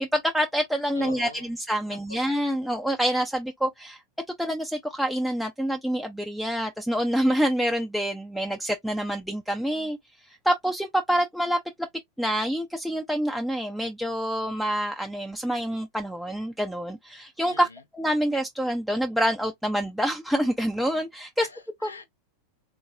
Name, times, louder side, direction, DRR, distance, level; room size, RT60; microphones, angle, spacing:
voice 1, 0.0-4.0 4.4-10.0 10.3-11.6 12.2-17.7 17.9-21.5 21.8-21.9, equal, ahead, 0.4 m, -27 dB
voice 2, 0.9-1.5 1.9-2.2 17.5-17.8 21.4-22.1, left 4 dB, 80° left, 0.7 m, -42 dB
3.8 x 2.5 x 2.7 m
figure-of-eight pair, 90°, 0 cm